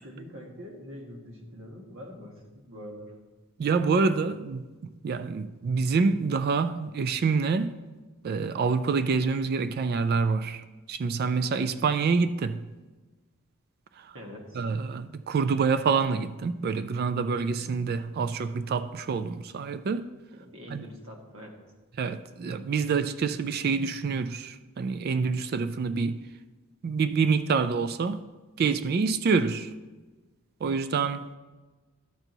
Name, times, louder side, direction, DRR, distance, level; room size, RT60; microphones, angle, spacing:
voice 1, 0.0-3.2 14.1-14.6 20.3-21.8, equal, 65° right, 1.5 m, -44 dB
voice 2, 3.6-4.6 5.0-7.8 8.2-12.6 14.0-14.1 14.6-20.1 20.7-20.8 22.0-26.2 26.8-28.2 28.6-29.7 30.6-31.4, right 5 dB, 45° right, 0.3 m, -27 dB
12.5 x 4.5 x 3.9 m
head